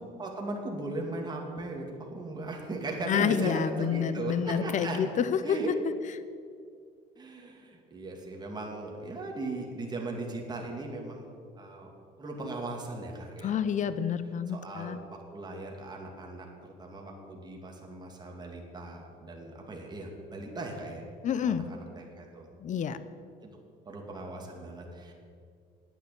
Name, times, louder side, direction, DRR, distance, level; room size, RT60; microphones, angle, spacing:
voice 1, 0.2-1.9 2.1-5.0 5.4-5.7 7.2-11.3 11.6-11.9 12.2-13.6 14.5-21.0 21.4-22.5 23.9-25.1, right 2 dB, 25° right, 0 dB, 2.4 m, -38 dB
voice 2, 3.1-5.4 13.4-15.0 21.2-21.6 22.6-23.0, left 8 dB, 45° left, 13 dB, 0.8 m, -28 dB
9.8 x 9.3 x 8.3 m, 2.2 s
cardioid pair, 110°, 17 cm